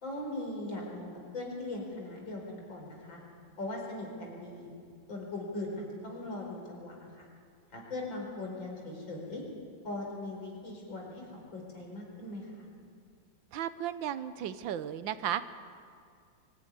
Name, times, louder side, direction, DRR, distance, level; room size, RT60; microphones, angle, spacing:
voice 1, 0.0-3.2 3.6-4.7 5.1-7.3 7.7-9.4 9.8-12.7, left 2 dB, 85° left, 0 dB, 5.2 m, -40 dB
voice 2, 13.5-15.4, right 10 dB, 85° right, 13 dB, 1.6 m, -34 dB
23.5 x 14.5 x 9.5 m, 2.2 s
omnidirectional pair, 2.0 m